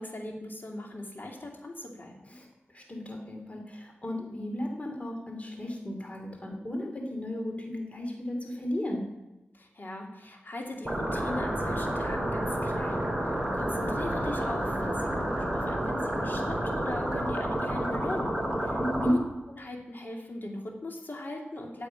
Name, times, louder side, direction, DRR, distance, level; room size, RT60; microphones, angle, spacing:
voice 1, 0.0-2.1 9.5-19.2 19.5-21.9, left 1 dB, 55° left, 0 dB, 2.7 m, -39 dB
voice 2, 2.3-9.1 18.8-19.2, left 1 dB, 35° left, 2 dB, 2.5 m, -34 dB
sound 1, 10.8-19.1, right 1 dB, 15° right, 4.9 m, -30 dB
9.3 x 7.7 x 9.0 m, 0.99 s
wide cardioid pair, 65°, 4 cm